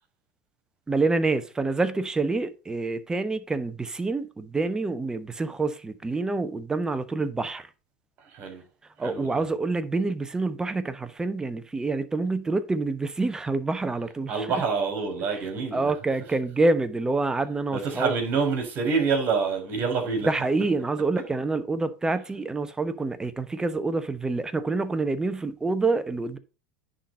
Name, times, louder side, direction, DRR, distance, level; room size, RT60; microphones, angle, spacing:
voice 1, 0.9-7.7 9.0-14.5 15.3-18.1 20.3-26.4, right 3 dB, 15° right, 1.0 m, -27 dB
voice 2, 8.3-8.6 9.0-9.4 14.3-15.9 17.7-20.3, right 5 dB, 45° right, 3.7 m, -27 dB
10.0 x 4.2 x 5.3 m
hypercardioid pair, 85°, 5 cm